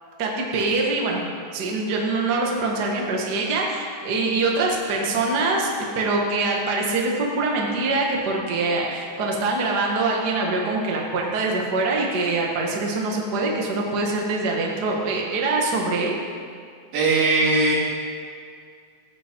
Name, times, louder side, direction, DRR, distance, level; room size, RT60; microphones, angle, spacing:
voice 1, 0.2-1.2 1.5-5.7 5.9-16.1, right 3 dB, 50° right, -1 dB, 1.3 m, -24 dB
voice 2, 16.9-17.8, right 3 dB, 85° right, -7 dB, 4.4 m, -19 dB
15.0 x 8.2 x 4.5 m, 2.2 s
omnidirectional pair, 3.9 m